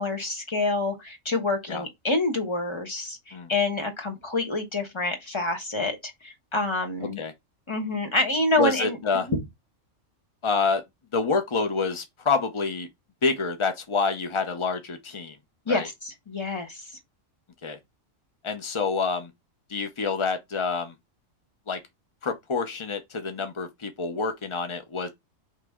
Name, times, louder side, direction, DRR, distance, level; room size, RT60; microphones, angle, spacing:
voice 1, 0.0-7.2 7.7-9.4 15.7-16.8, left 2 dB, 25° left, 1.1 m, -27 dB
voice 2, 8.6-9.3 10.4-10.8 11.1-12.9 13.2-15.4 15.7-15.9 17.6-17.8 18.4-19.3 19.7-20.9 21.7-21.8 22.2-25.1, left 4 dB, 50° left, 0.3 m, -27 dB
4.6 x 3.0 x 3.5 m
omnidirectional pair, 1.3 m